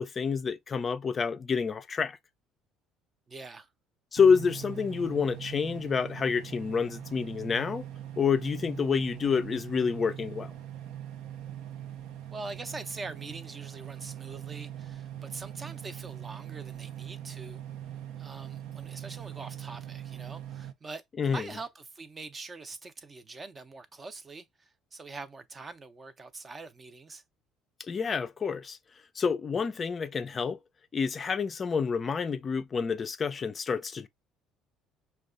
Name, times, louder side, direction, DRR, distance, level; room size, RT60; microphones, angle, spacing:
voice 1, 0.0-2.2 4.1-7.9 8.2-10.5 21.2-21.5 27.8-28.8 29.2-30.6 30.9-34.1, left 6 dB, 35° left, 0.3 m, -28 dB
voice 2, 3.3-3.7 12.3-17.6 18.2-27.2, right 3 dB, 30° right, 0.5 m, -43 dB
sound 1, 4.2-20.7, right 11 dB, 75° right, 0.5 m, -42 dB
5.2 x 2.2 x 2.4 m
supercardioid pair, 95°, 0 cm